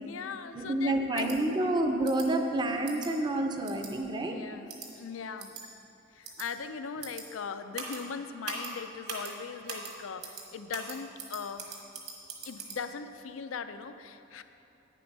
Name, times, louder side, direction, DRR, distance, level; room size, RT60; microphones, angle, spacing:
voice 1, 0.0-1.7 4.2-4.7 5.0-5.5 6.1-11.7 12.5-14.4, left 6 dB, 80° left, 10 dB, 0.5 m, -39 dB
voice 2, 0.5-4.4, right 1 dB, 20° right, 4 dB, 0.6 m, -29 dB
sound 1, 1.2-1.4 2.0-2.3 2.9-3.1 3.7-3.9 4.7-4.9 5.4-5.6 6.2-6.5 7.0-7.2 7.7-8.0 8.4-8.7 9.1-9.3 9.7-9.9 10.2-10.4 10.7-12.8, right 5 dB, 55° right, 1.4 m, -40 dB
8.8 x 7.6 x 5.4 m, 3.0 s
head